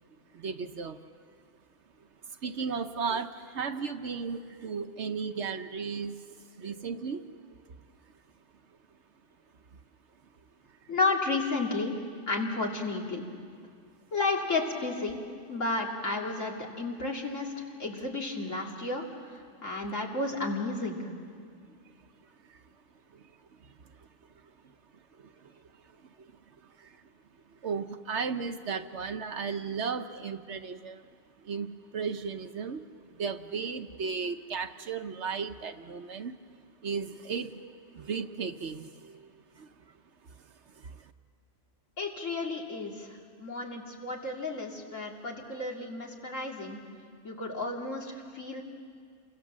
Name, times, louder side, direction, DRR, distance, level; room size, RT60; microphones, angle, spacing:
voice 1, 0.3-1.0 2.2-7.2 10.8-10.9 21.8-22.0 22.4-22.6 23.1-23.7 24.0-24.1 24.4-26.3 26.6-27.0 27.6-31.1 31.4-36.3 36.8-37.6 37.9-39.7 40.4-41.1, right 5 dB, 60° right, 8 dB, 1.1 m, -36 dB
voice 2, 10.9-11.9 12.3-13.2 14.1-15.2 15.5-21.0 42.0-46.8 47.2-48.6, left 3 dB, 65° left, -1 dB, 3.2 m, -32 dB
28.5 x 24.0 x 7.5 m, 2.2 s
omnidirectional pair, 1.4 m